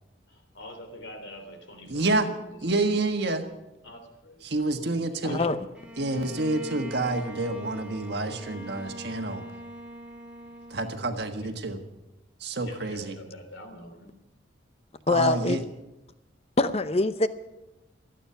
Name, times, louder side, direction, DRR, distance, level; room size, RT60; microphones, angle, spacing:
voice 1, 0.3-3.1 3.8-4.4 5.3-5.7 11.4-11.6 12.6-14.1, left 1 dB, 75° left, 6 dB, 3.4 m, -46 dB
voice 2, 1.9-2.3 2.6-3.4 4.4-5.4 6.0-9.4 10.7-11.8 12.4-13.2 15.1-15.6, right 2 dB, 55° right, 5 dB, 1.6 m, -28 dB
voice 3, 5.2-5.6 15.1-15.6 16.6-17.3, left 2 dB, 30° left, 12 dB, 0.7 m, -24 dB
Bowed string instrument, 5.7-11.5, equal, 5° right, 2.2 m, -43 dB
27.5 x 9.2 x 5.7 m, 0.97 s
head